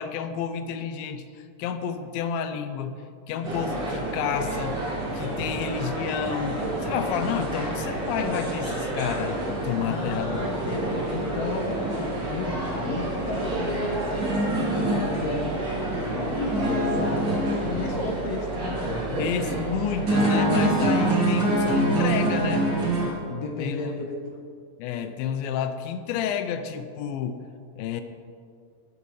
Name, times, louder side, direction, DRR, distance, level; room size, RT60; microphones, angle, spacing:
voice 1, 0.0-3.0 3.3-4.8 5.1-10.5 19.1-22.7 23.6-23.9 24.8-27.4 27.8-28.0, left 7 dB, 85° left, 9 dB, 2.4 m, -30 dB
sound 1, 3.4-23.1, right 1 dB, 35° right, 2.8 m, -27 dB
voice 2, 9.8-11.9 12.3-15.6 16.1-19.1 23.3-24.2, left 3 dB, 70° left, 2 dB, 1.6 m, -33 dB
17.0 x 8.3 x 3.2 m, 2.3 s
omnidirectional pair, 4.1 m